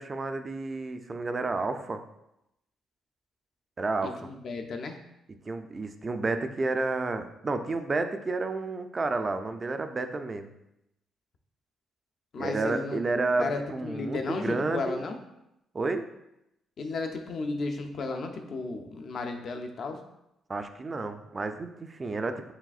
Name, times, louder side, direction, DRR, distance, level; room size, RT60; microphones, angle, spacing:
voice 1, 0.0-2.0 3.8-4.1 5.5-10.5 12.4-15.0 15.7-16.1 20.5-22.5, right 3 dB, 30° right, 8 dB, 0.3 m, -31 dB
voice 2, 4.0-5.0 12.3-13.0 13.4-15.2 16.8-20.0, left 3 dB, 55° left, 5 dB, 0.5 m, -34 dB
4.9 x 3.3 x 2.4 m, 0.85 s
cardioid pair, 90°, 0 cm